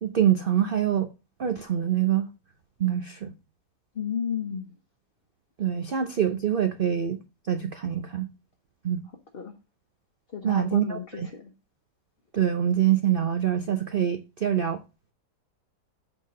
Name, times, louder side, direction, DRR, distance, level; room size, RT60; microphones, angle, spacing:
voice 1, 0.0-1.1 1.4-2.3 2.8-3.3 5.6-8.3 8.8-9.0 10.4-11.3 12.3-14.8, right 10 dB, 90° right, 0.4 m, -25 dB
voice 2, 4.0-4.6 9.3-9.5 10.3-11.0, left 7 dB, 40° left, 1.0 m, -31 dB
8.0 x 4.1 x 5.1 m
omnidirectional pair, 1.9 m